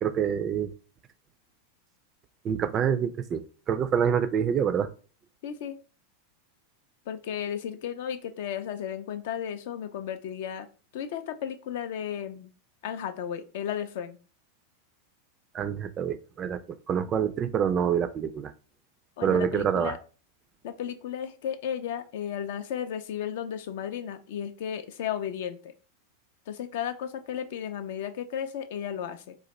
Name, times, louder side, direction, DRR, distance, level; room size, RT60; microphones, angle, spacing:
voice 1, 0.0-0.7 2.4-4.9 15.5-16.6 16.9-18.5 19.2-19.9, right 8 dB, 25° right, 10 dB, 0.3 m, -26 dB
voice 2, 5.4-5.8 7.1-10.7 10.9-12.5 12.8-14.2 19.2-20.0 20.6-25.7 26.5-29.3, left 9 dB, 55° left, 10 dB, 0.4 m, -34 dB
4.0 x 2.3 x 2.9 m, 0.37 s
figure-of-eight pair, 90°, 0 cm